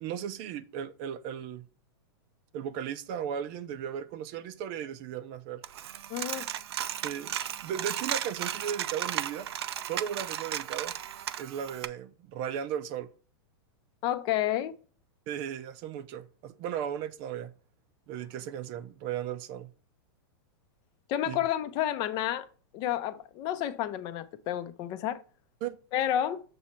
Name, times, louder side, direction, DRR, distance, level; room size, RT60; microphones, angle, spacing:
voice 1, 0.0-1.6 2.5-5.6 7.0-7.3 7.6-9.5 9.8-10.9 11.4-13.1 15.3-17.5 18.1-19.7 21.3-21.4 25.6-25.8, right 9 dB, 40° right, 0.6 m, -36 dB
Coin (dropping), 5.6-11.9, right 11 dB, 85° right, 0.6 m, -35 dB
voice 2, 6.1-6.5 14.0-14.8 21.1-22.5 22.7-25.2 25.9-26.4, left 11 dB, 35° left, 0.7 m, -30 dB
7.1 x 3.3 x 5.7 m
supercardioid pair, 150°, 13 cm